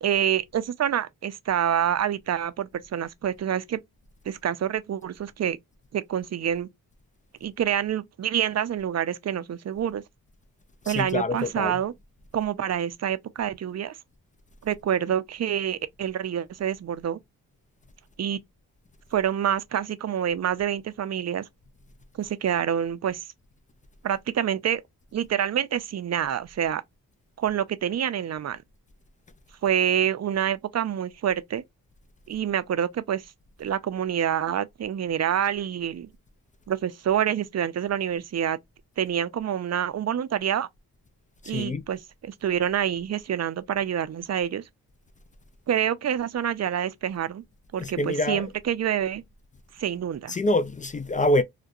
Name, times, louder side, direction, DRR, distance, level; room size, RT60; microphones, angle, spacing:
voice 1, 0.0-3.8 4.3-5.6 5.9-6.7 7.4-10.0 10.9-11.9 12.3-14.0 14.6-17.2 18.2-18.4 19.1-21.4 22.2-23.3 24.0-24.8 25.1-26.8 27.4-28.6 29.6-31.6 32.3-33.3 33.6-36.1 36.7-38.6 39.0-40.7 41.5-44.6 45.7-47.4 47.7-49.2 49.7-50.4, right 9 dB, 40° right, 0.5 m, -27 dB
voice 2, 10.9-11.7 41.5-41.8 47.8-48.5 50.3-51.4, left 1 dB, 20° left, 0.3 m, -25 dB
2.3 x 2.2 x 2.6 m
supercardioid pair, 45°, 40 cm